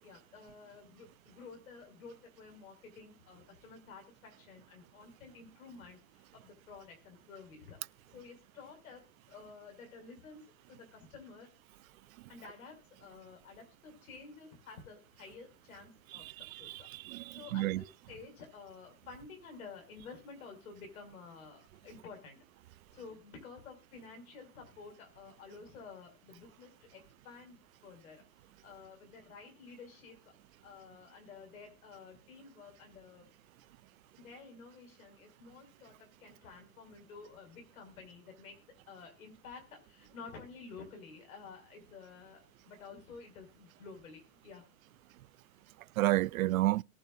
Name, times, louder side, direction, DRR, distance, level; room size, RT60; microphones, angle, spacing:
voice 1, 0.0-7.8 8.1-10.4 10.7-11.5 12.3-16.9 17.3-22.4 22.9-28.2 28.6-30.3 30.6-33.3 34.2-44.6, left 5 dB, 90° left, 6.0 m, -52 dB
voice 2, 16.2-17.8 46.0-46.8, right 17 dB, 80° right, 0.5 m, -31 dB
21.0 x 7.3 x 2.6 m
supercardioid pair, 155°, 41 cm